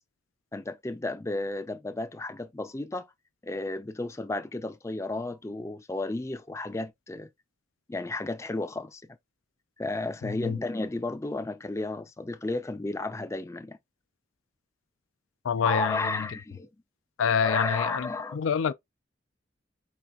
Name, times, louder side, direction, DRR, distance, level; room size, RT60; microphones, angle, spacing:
voice 1, 0.5-3.1 3.4-7.3 7.9-9.0 9.8-13.8 15.6-16.7 17.4-18.4, left 2 dB, 15° left, 0.4 m, -33 dB
voice 2, 10.2-10.6 15.4-16.3 17.2-18.7, left 7 dB, 85° left, 0.4 m, -27 dB
4.8 x 4.1 x 2.3 m
head